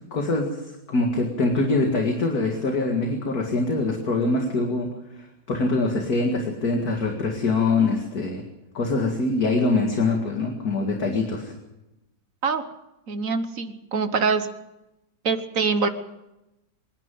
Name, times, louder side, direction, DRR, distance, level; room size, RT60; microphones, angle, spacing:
voice 1, 0.1-0.6 0.9-4.9 5.2-8.4 8.7-11.5, left 3 dB, 55° left, 2 dB, 2.6 m, -24 dB
voice 2, 13.1-14.5 15.2-15.9, right 5 dB, 50° right, 9 dB, 1.5 m, -24 dB
26.0 x 10.5 x 9.4 m, 0.95 s
omnidirectional pair, 2.0 m